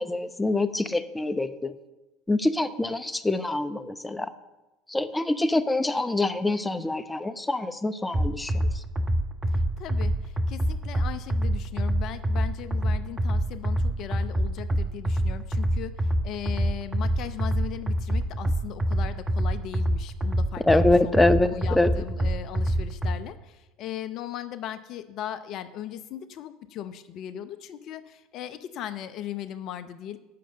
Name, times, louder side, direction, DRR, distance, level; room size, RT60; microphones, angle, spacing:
voice 1, 0.0-1.7 2.3-4.3 4.9-8.7 20.7-21.9, left 2 dB, 10° left, 11 dB, 0.8 m, -25 dB
sound 1, 8.1-23.1, right 1 dB, 20° right, 1.1 m, -26 dB
voice 2, 9.5-20.6 21.0-30.2, left 11 dB, 50° left, 12 dB, 0.7 m, -38 dB
8.5 x 6.3 x 7.9 m, 1.0 s
hypercardioid pair, 75°, 0 cm